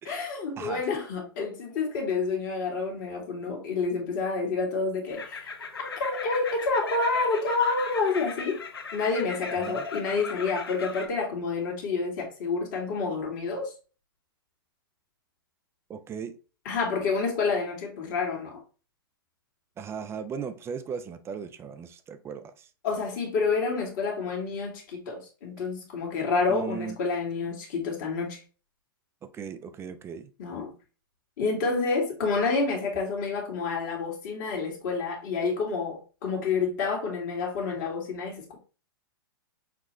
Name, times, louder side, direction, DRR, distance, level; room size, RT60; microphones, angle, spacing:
voice 1, 0.1-5.5 5.8-8.6 8.9-13.7 16.7-18.6 22.8-28.4 30.4-30.7 31.4-38.6, left 4 dB, 55° left, 1.7 m, -28 dB
sound 1, 5.1-11.1, left 4 dB, 90° left, 0.8 m, -38 dB
voice 2, 15.9-16.4 19.8-22.7 26.5-27.0 29.2-30.3, right 7 dB, 20° right, 0.6 m, -37 dB
5.9 x 2.4 x 3.1 m
hypercardioid pair, 115°, 12 cm